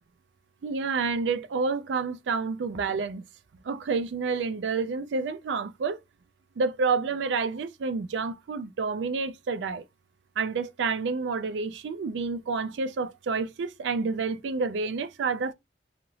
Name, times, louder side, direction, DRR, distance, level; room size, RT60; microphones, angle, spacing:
voice 1, 0.6-3.2 3.6-6.0 6.6-9.8 10.4-15.5, right 4 dB, 80° right, 0.4 m, -29 dB
2.9 x 2.4 x 3.0 m
head